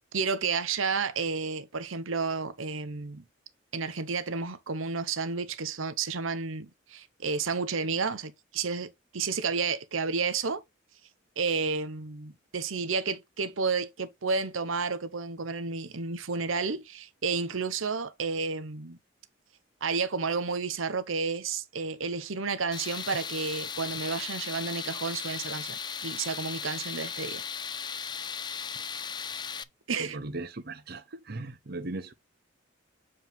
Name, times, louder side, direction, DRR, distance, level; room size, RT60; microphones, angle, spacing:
voice 1, 0.1-3.2 3.7-10.6 11.4-19.0 19.8-27.4 29.9-30.2, right 4 dB, 85° right, 0.9 m, -31 dB
Tools, 22.7-29.6, left 7 dB, 20° left, 0.3 m, -37 dB
voice 2, 30.0-32.1, right 2 dB, 50° right, 0.7 m, -38 dB
7.5 x 4.8 x 3.5 m
head